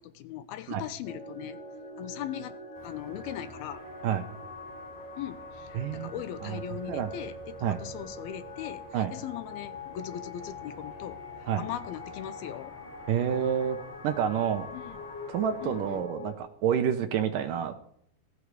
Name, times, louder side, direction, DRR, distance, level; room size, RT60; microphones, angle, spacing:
voice 1, 0.0-1.6 2.0-2.6 2.8-3.8 5.2-12.7 14.7-15.0 15.6-16.0, left 11 dB, 80° left, 12 dB, 2.6 m, -39 dB
sound 1, 1.0-16.3, left 3 dB, 50° left, 4.4 m, -44 dB
Car passing by / Traffic noise roadway noise, 2.7-16.0, equal, 5° right, 7.3 m, -51 dB
voice 2, 5.7-6.2 6.4-6.6 6.9-7.1 7.6-7.8 8.9-9.1 11.5-11.7 13.1-13.8 14.0-14.7 15.3-17.7, right 8 dB, 70° right, 9 dB, 2.3 m, -28 dB
18.5 x 14.5 x 4.9 m, 0.67 s
omnidirectional pair, 4.5 m